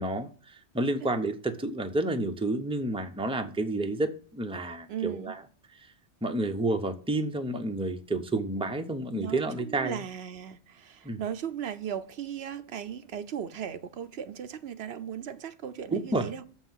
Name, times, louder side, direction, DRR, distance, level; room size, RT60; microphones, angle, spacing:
voice 1, 0.0-5.4 6.2-10.0 11.0-11.2 15.9-16.3, right 2 dB, 5° right, 0.8 m, -30 dB
voice 2, 4.9-5.4 9.1-16.4, right 9 dB, 75° right, 1.0 m, -37 dB
7.1 x 5.7 x 7.4 m
omnidirectional pair, 1.1 m